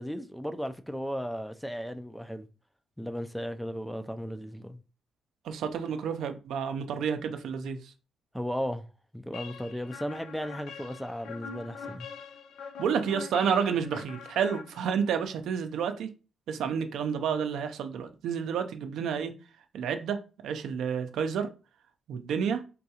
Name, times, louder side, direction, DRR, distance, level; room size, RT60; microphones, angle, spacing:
voice 1, 0.0-2.5 3.0-4.8 8.3-8.9 9.1-12.1, equal, ahead, 0.3 m, -35 dB
voice 2, 5.4-7.9 12.8-16.1 16.5-19.3 19.7-20.2 20.4-21.5 22.1-22.6, right 7 dB, 75° right, 0.4 m, -30 dB
sound 1, 9.3-15.2, left 5 dB, 80° left, 0.4 m, -44 dB
3.6 x 2.3 x 2.8 m
cardioid pair, 90°, 0 cm